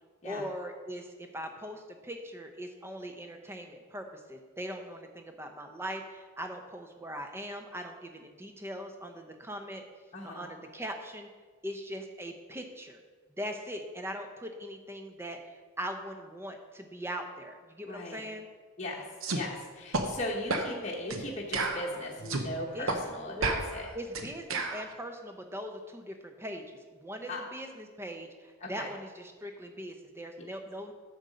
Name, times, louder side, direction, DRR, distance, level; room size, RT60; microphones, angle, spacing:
voice 1, 0.2-9.8 10.2-11.3 11.6-13.0 13.3-18.5 22.7-23.0 23.3-23.6 23.9-30.9, equal, 10° right, 5 dB, 0.7 m, -40 dB
voice 2, 10.1-10.5 17.9-18.2 18.8-19.0 19.3-23.9 27.3-27.4 28.6-28.9 30.4-30.5, left 1 dB, 30° left, -3 dB, 1.0 m, -38 dB
sound 1, 19.2-19.4 19.9-20.1 20.5-20.7 21.1-21.2 21.5-22.5 22.9-23.0 23.4-24.8, right 3 dB, 70° right, 0.9 m, -31 dB
7.9 x 6.8 x 5.1 m, 1.4 s
head